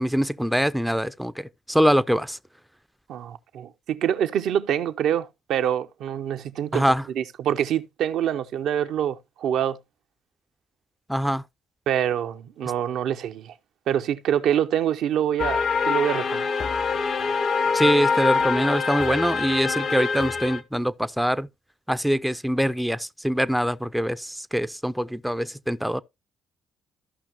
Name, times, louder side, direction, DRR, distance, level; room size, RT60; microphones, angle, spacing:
voice 1, 0.0-2.4 6.7-7.0 11.1-11.4 17.7-21.5 21.9-26.0, equal, ahead, 0.5 m, -24 dB
voice 2, 3.1-6.8 7.1-9.8 11.9-13.5 13.9-16.6, right 10 dB, 70° right, 0.6 m, -26 dB
sound 1, 15.4-20.6, left 5 dB, 55° left, 0.9 m, -24 dB
14.0 x 5.7 x 2.9 m
hypercardioid pair, 50°, 0 cm